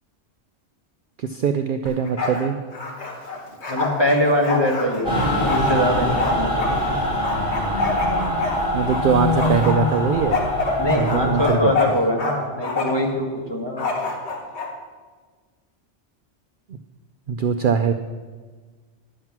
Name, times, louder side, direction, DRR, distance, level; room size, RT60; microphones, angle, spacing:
voice 1, 1.2-2.6 8.7-10.5 11.0-12.0 16.7-16.8 17.3-17.9, right 6 dB, 60° right, 8 dB, 0.6 m, -22 dB
Bark, 1.9-2.4 2.7-6.7 7.2-9.0 9.4-12.3 12.6-13.1 13.8-14.7, left 3 dB, 65° left, 1.7 m, -27 dB
voice 2, 3.7-7.0 10.8-13.9, left 1 dB, 20° left, 0 dB, 1.5 m, -23 dB
Mechanical fan, 5.0-11.5, left 1 dB, 5° right, 3.5 m, -23 dB
11.0 x 7.5 x 5.9 m, 1.5 s
omnidirectional pair, 1.2 m